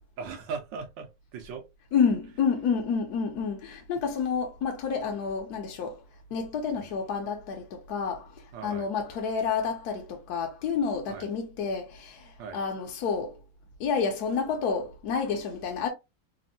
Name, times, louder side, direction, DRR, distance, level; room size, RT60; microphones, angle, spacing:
voice 1, 0.2-1.6 6.8-6.9 8.5-8.9 11.1-11.3 12.4-12.6, right 5 dB, 80° right, 1.3 m, -39 dB
voice 2, 1.9-6.0 6.3-13.4 13.8-15.9, left 6 dB, 65° left, 1.0 m, -29 dB
3.5 x 2.0 x 2.5 m
omnidirectional pair, 2.0 m